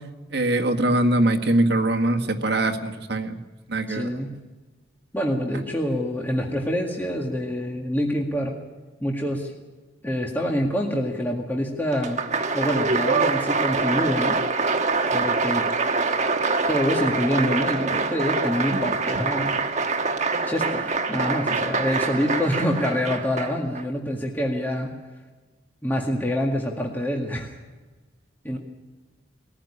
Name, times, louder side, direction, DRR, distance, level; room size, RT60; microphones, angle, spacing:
voice 1, 0.3-3.4 3.7-4.2 18.7-18.8, right 1 dB, 60° right, 4 dB, 1.7 m, -22 dB
voice 2, 3.9-4.3 5.1-8.6 9.0-9.5 10.0-12.2 12.5-14.4 15.1-15.7 16.7-19.6 20.5-24.9 25.8-27.5 28.4-28.6, equal, 10° left, -1 dB, 1.9 m, -26 dB
Applause, 11.9-23.8, right 4 dB, 40° right, 1.3 m, -25 dB
21.0 x 14.5 x 9.8 m, 1.3 s
head